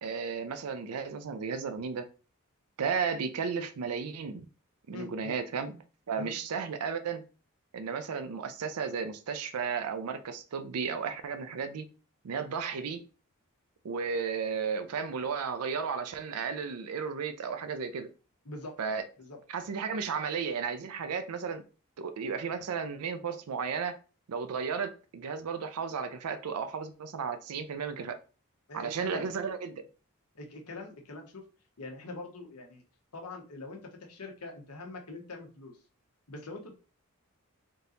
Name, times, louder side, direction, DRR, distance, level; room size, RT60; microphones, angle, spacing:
voice 1, 0.0-2.1 2.8-4.4 4.9-7.2 7.7-11.9 12.2-13.0 13.8-18.1 18.8-19.0 19.5-21.6 22.0-24.0 24.3-28.2 28.7-29.9, right 6 dB, 80° right, 0.5 m, -34 dB
voice 2, 4.9-5.4 6.2-6.3 18.4-18.8 19.2-19.4 28.7-29.3 30.3-31.5 31.8-32.8 33.1-35.8 36.3-36.7, left 2 dB, 90° left, 1.1 m, -43 dB
3.7 x 2.8 x 3.8 m
head